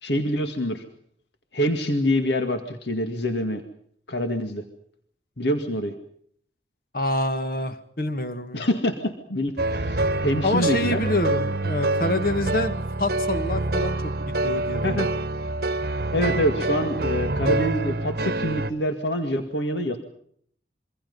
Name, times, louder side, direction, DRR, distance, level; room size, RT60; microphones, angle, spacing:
voice 1, 0.0-0.8 1.5-3.6 4.1-4.6 5.4-6.0 8.5-11.0 14.8-15.1 16.1-20.0, equal, 75° left, 6 dB, 2.1 m, -25 dB
voice 2, 6.9-8.7 10.4-15.1, left 1 dB, 50° left, 9 dB, 1.9 m, -27 dB
sound 1, 9.6-18.7, right 2 dB, 55° right, 1.1 m, -26 dB
25.5 x 24.5 x 5.5 m, 0.64 s
head